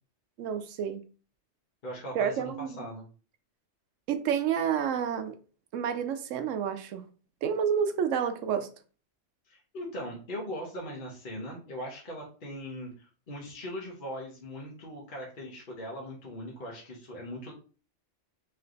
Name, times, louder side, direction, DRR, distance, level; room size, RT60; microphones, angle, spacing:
voice 1, 0.4-1.0 2.1-2.9 4.1-5.4 5.7-7.0 7.4-8.7, right 8 dB, 85° right, 0.9 m, -29 dB
voice 2, 1.8-3.1 9.5-17.5, equal, 45° left, 1.1 m, -40 dB
3.3 x 3.2 x 3.8 m
omnidirectional pair, 1.3 m